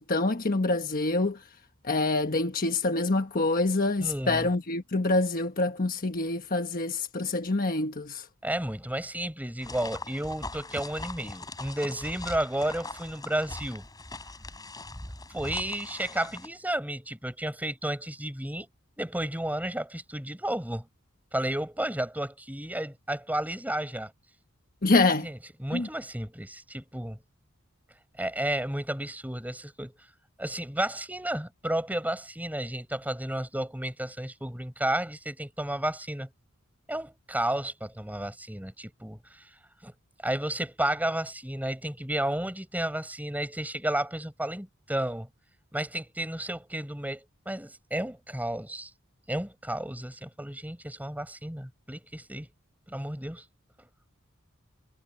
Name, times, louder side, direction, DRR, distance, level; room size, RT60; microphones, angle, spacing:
voice 1, 0.0-1.4 1.8-8.2 24.8-25.3 25.7-25.9, left 2 dB, 45° left, 1.3 m, -26 dB
voice 2, 4.0-4.5 8.4-13.9 15.3-18.7 19.0-20.9 21.3-24.1 25.2-27.2 28.2-29.9 30.4-36.3 36.9-39.4 39.8-39.9 40.2-45.3 45.7-48.9 49.3-52.5 52.9-53.4, right 1 dB, 10° right, 7.0 m, -32 dB
sound 1, 9.6-16.5, left 2 dB, 20° left, 4.9 m, -41 dB
head